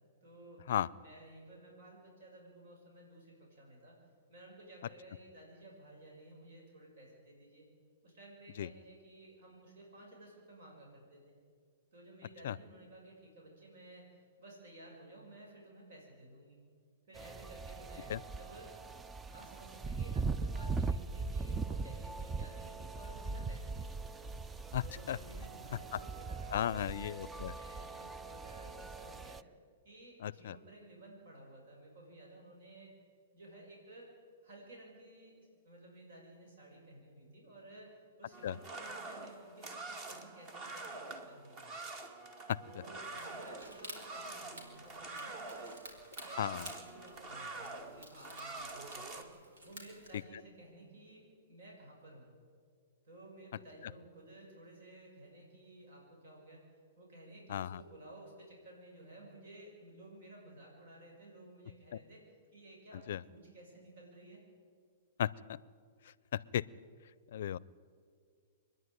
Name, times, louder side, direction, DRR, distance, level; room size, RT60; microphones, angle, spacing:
voice 1, 0.2-0.6 1.0-3.9 4.3-7.7 8.0-11.3 11.9-16.6 17.1-18.7 19.3-23.9 24.8-29.4 29.8-32.9 33.3-34.1 34.4-41.6 42.6-45.8 46.2-49.3 49.6-52.3 53.0-56.6 57.0-62.2 62.5-64.4, right 1 dB, 70° right, -1 dB, 6.3 m, -55 dB
sound 1, 17.1-29.4, right 4 dB, 10° right, 0.4 m, -40 dB
voice 2, 26.5-27.5 30.2-30.6 38.4-38.5 42.5-42.6 46.4-46.7 57.5-57.8 63.1-63.2 65.2-65.3 66.3-66.6 67.3-67.6, left 11 dB, 65° left, 22 dB, 0.5 m, -34 dB
sound 2, 38.3-49.2, right 3 dB, 35° right, 2.1 m, -46 dB
sound 3, 43.0-50.2, right 1 dB, 90° right, 4.5 m, -53 dB
25.0 x 10.5 x 9.6 m, 2.1 s
hypercardioid pair, 140°, 0 cm